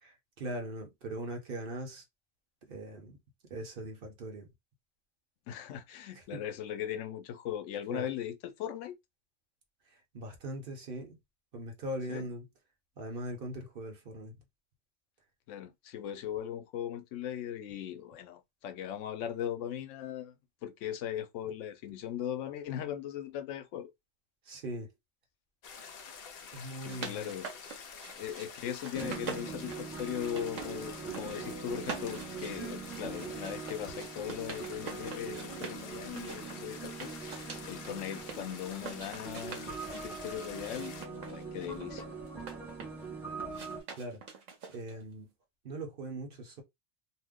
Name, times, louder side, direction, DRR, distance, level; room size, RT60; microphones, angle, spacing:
voice 1, 0.0-2.0 2.7-3.2 3.5-4.5 6.1-6.4 7.9-8.1 9.9-11.2 11.5-12.5 13.0-14.4 24.4-24.9 26.5-27.4 44.0-44.2 44.7-45.3 45.6-46.6, right 1 dB, 50° right, 1.0 m, -40 dB
voice 2, 5.5-9.0 12.1-12.3 15.5-20.3 20.6-23.9 26.8-27.5 28.2-42.0, left 10 dB, 90° left, 0.9 m, -39 dB
sound 1, 25.6-41.0, left 6 dB, 60° left, 0.8 m, -48 dB
sound 2, 26.6-28.5 28.8-30.7 31.0-31.5 31.8-35.8 36.2-38.4 38.8-40.1 40.5-43.1 43.5-45.0, right 5 dB, 90° right, 1.2 m, -45 dB
sound 3, 28.9-43.8, right 5 dB, ahead, 0.9 m, -42 dB
2.7 x 2.1 x 3.5 m
omnidirectional pair, 1.2 m